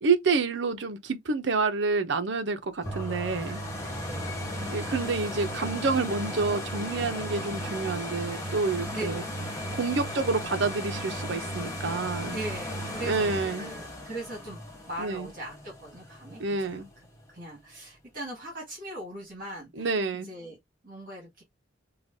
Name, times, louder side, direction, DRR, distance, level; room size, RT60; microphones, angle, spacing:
voice 1, 0.0-3.6 4.7-9.2 9.7-12.4 13.1-13.7 15.0-15.3 16.4-16.9 19.8-20.3, right 4 dB, 65° right, 0.6 m, -28 dB
sound 1, 2.8-16.5 17.0-17.1, equal, 15° left, 1.2 m, -35 dB
voice 2, 3.0-3.6 4.1-4.3 8.9-9.2 12.3-16.8 17.3-19.9 20.2-20.6 20.8-21.4, right 1 dB, 45° right, 1.9 m, -40 dB
4.8 x 2.3 x 2.6 m
head